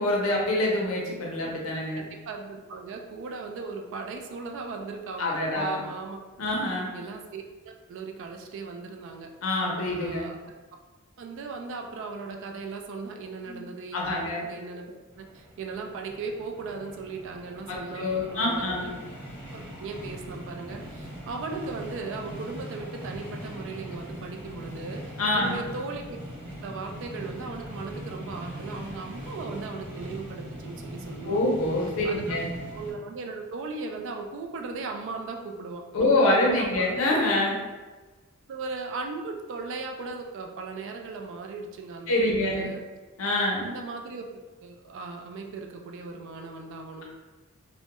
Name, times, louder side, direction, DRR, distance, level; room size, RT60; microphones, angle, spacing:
voice 1, 0.0-2.0 5.2-5.8 6.4-6.9 9.4-10.2 13.5-13.6 13.9-14.4 17.7-18.9 25.2-25.6 31.3-32.5 35.9-37.6 42.1-42.7 43.2-43.6, left 1 dB, 70° left, -2 dB, 0.5 m, -25 dB
voice 2, 1.9-6.2 6.9-9.3 9.9-10.4 11.2-19.0 19.5-26.2 26.6-31.4 32.0-32.4 32.7-36.9 38.5-42.8 43.6-47.0, right 4 dB, 60° right, 3 dB, 0.3 m, -37 dB
train passing High Quality Surround, 15.1-32.9, equal, 5° right, 0.9 m, -41 dB
2.2 x 2.1 x 2.8 m, 1.2 s
head